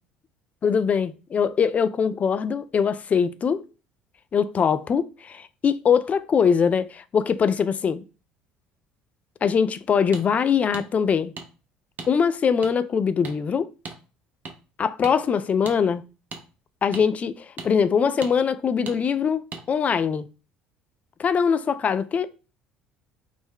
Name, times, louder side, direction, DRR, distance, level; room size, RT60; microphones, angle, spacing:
voice 1, 0.6-3.6 4.3-8.0 9.4-11.3 12.1-13.7 14.8-16.0 16.8-19.4 19.7-20.3 21.2-22.3, left 6 dB, 35° left, 0.3 m, -22 dB
sound 1, 10.1-10.2 10.7-10.9 11.4-11.5 12.0-12.1 12.6-12.7 13.2-13.4 13.8-14.0 14.4-14.5 15.0-15.2 15.6-15.8 16.3-16.4 16.9-17.1 17.6-17.7 18.2-18.3 18.9-19.0 19.5-19.6, right 4 dB, 45° right, 0.7 m, -36 dB
3.3 x 2.0 x 3.6 m
hypercardioid pair, 70°, 4 cm